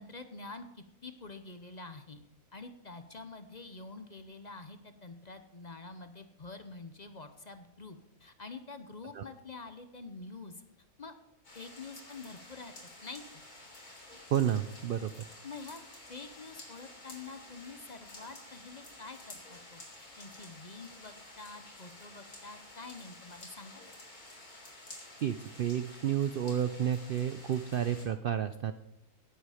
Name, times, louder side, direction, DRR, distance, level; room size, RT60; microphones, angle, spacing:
voice 1, 0.0-2.2 2.5-10.6 11.0-11.1 11.5-12.7 13.0-13.2 15.4-15.8 16.1-23.7, left 3 dB, 35° left, 9 dB, 0.8 m, -47 dB
sound 1, 11.4-28.1, left 2 dB, 90° left, 3.8 m, -51 dB
voice 2, 14.3-15.1 25.2-28.7, right 9 dB, 85° right, 11 dB, 0.4 m, -31 dB
17.5 x 8.0 x 5.0 m, 0.84 s
omnidirectional pair, 1.5 m